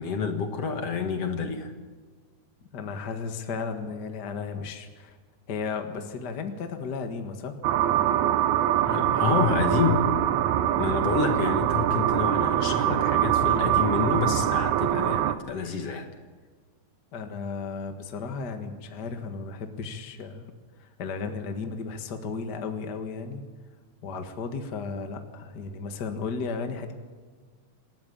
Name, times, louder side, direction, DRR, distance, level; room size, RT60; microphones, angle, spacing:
voice 1, 0.0-1.7 8.8-10.0 10.8-16.1, left 5 dB, 55° left, 6 dB, 2.5 m, -28 dB
voice 2, 2.7-5.2 5.5-7.6 17.1-20.5 20.8-23.4 24.0-26.9, left 5 dB, 40° left, 6 dB, 2.0 m, -34 dB
sound 1, 7.6-15.3, right 12 dB, 80° right, 2.3 m, -24 dB
27.0 x 13.5 x 8.8 m, 1.5 s
omnidirectional pair, 3.4 m